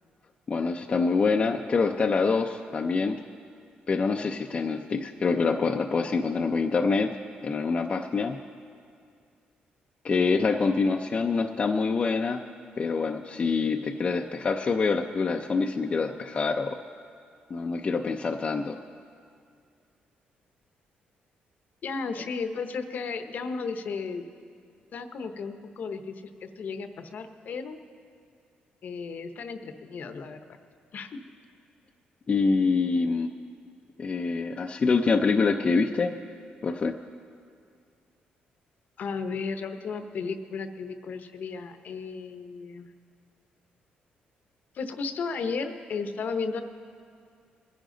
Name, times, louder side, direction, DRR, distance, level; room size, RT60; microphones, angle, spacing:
voice 1, 0.5-3.2 3.9-7.1 7.4-8.4 10.0-12.4 12.8-16.8 17.5-18.8 32.3-33.3 34.0-36.1 36.6-37.0, left 4 dB, 35° left, 3 dB, 0.5 m, -25 dB
voice 2, 21.8-24.3 24.9-27.8 28.8-30.6 30.9-31.2 39.0-42.9 44.7-46.6, left 4 dB, 60° left, 8 dB, 0.9 m, -34 dB
21.5 x 10.0 x 3.8 m, 2.3 s
cardioid pair, 100°, 3 cm